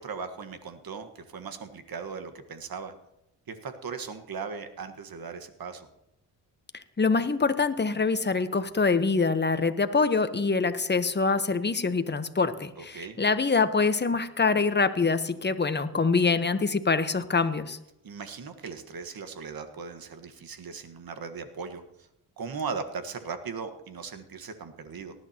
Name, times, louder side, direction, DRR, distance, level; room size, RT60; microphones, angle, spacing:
voice 1, 0.0-2.9 3.5-5.9 12.8-13.2 18.0-21.8 22.4-25.1, right 5 dB, 55° right, 8 dB, 1.6 m, -38 dB
voice 2, 7.0-17.8, left 4 dB, 25° left, 11 dB, 1.1 m, -25 dB
19.0 x 11.0 x 3.0 m, 0.87 s
supercardioid pair, 55°, 42 cm